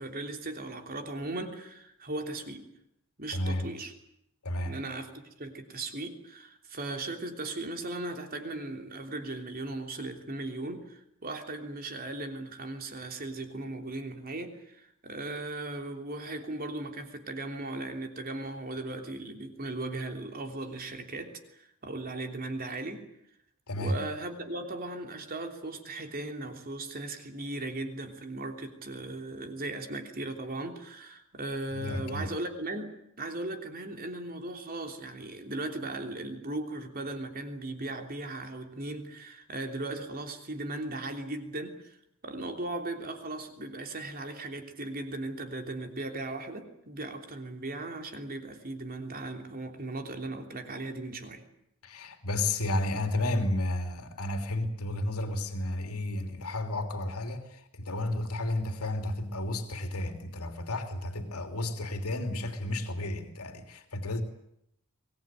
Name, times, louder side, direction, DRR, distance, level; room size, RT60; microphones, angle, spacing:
voice 1, 0.0-2.7 3.2-3.9 4.6-5.1 5.4-23.1 23.8-42.0 42.2-51.4, right 2 dB, 40° right, 3.3 m, -37 dB
voice 2, 3.3-3.7 4.4-4.8 23.7-24.0 31.7-32.3 51.8-64.2, left 1 dB, 80° left, 3.1 m, -32 dB
23.5 x 20.0 x 9.1 m
head